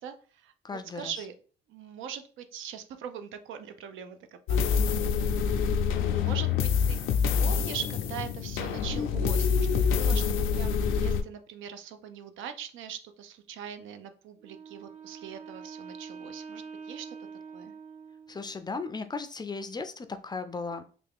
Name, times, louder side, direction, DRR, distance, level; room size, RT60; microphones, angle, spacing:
voice 1, 0.0-0.5 0.9-1.3 1.7-5.6 5.9-7.0 7.4-17.2 17.5-17.7, right 8 dB, 80° right, 8 dB, 0.5 m, -42 dB
voice 2, 0.6-1.1 18.3-20.8, left 4 dB, 20° left, 9 dB, 0.4 m, -36 dB
sound 1, 4.5-11.2, left 6 dB, 85° left, 0.4 m, -26 dB
Wind instrument woodwind instrument, 14.4-18.6, right 5 dB, 40° right, 1.0 m, -45 dB
3.4 x 2.4 x 3.4 m, 0.40 s
cardioid pair, 90°, 20 cm